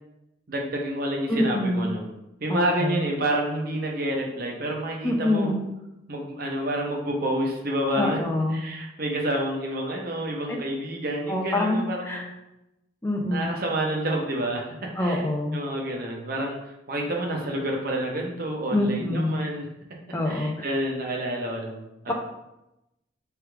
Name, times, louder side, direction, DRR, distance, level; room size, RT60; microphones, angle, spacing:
voice 1, 0.5-2.1 2.4-5.5 6.1-8.2 8.5-12.3 13.3-15.2 15.5-16.6 16.9-19.7 20.3-22.1, right 1 dB, 50° right, 0 dB, 0.7 m, -28 dB
voice 2, 1.3-1.9 2.5-3.0 5.0-5.6 8.0-8.6 10.5-10.6 11.3-12.3 13.0-13.5 15.0-15.6 18.7-19.4 20.1-20.7 22.1-22.2, left 1 dB, 15° left, 0 dB, 0.5 m, -25 dB
3.4 x 2.4 x 4.4 m, 0.90 s
head